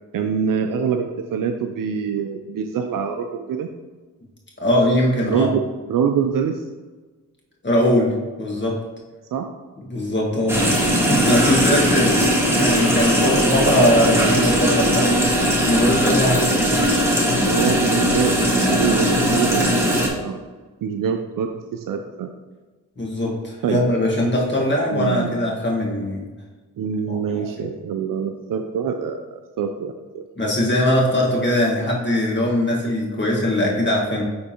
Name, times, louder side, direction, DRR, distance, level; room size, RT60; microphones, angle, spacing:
voice 1, 0.1-3.7 5.3-6.7 9.3-9.5 10.3-10.4 12.2-12.3 16.3-16.4 17.4-20.4 20.8-22.3 23.6-23.9 24.9-25.3 26.8-30.2, right 7 dB, 70° right, 6 dB, 0.5 m, -25 dB
voice 2, 4.6-5.5 7.6-8.8 9.9-15.1 15.6-16.7 23.0-26.2 27.1-27.7 30.4-34.2, left 1 dB, 30° left, -3 dB, 1.7 m, -21 dB
sound 1, 10.5-20.1, equal, 5° right, 1.5 m, -19 dB
9.4 x 3.6 x 2.9 m, 1.3 s
cardioid pair, 65°, 34 cm